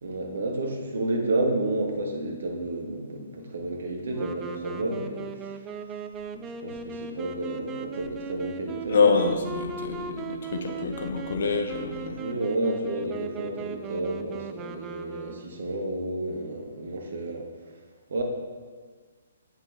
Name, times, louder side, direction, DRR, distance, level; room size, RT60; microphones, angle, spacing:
voice 1, 0.0-5.3 6.4-9.1 12.2-17.8 18.1-18.2, right 2 dB, 55° right, 1 dB, 1.3 m, -31 dB
Wind instrument woodwind instrument, 4.1-15.8, right 5 dB, 15° right, 0.4 m, -38 dB
voice 2, 8.9-12.2, left 4 dB, 50° left, 4 dB, 0.8 m, -26 dB
8.3 x 5.6 x 3.5 m, 1.6 s
figure-of-eight pair, 125°, 0 cm